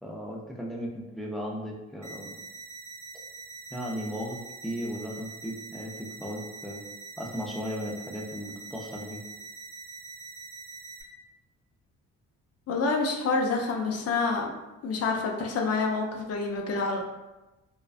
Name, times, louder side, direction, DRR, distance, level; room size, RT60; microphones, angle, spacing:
voice 1, 0.0-2.3 3.7-4.4 4.6-6.8 7.2-9.2, equal, ahead, -2 dB, 0.4 m, -36 dB
sound 1, 2.0-11.0, right 4 dB, 25° right, 0.7 m, -44 dB
voice 2, 12.7-14.5 14.8-17.0, left 3 dB, 55° left, 1 dB, 0.5 m, -27 dB
2.4 x 2.1 x 2.4 m, 1.1 s
cardioid pair, 90°, 30 cm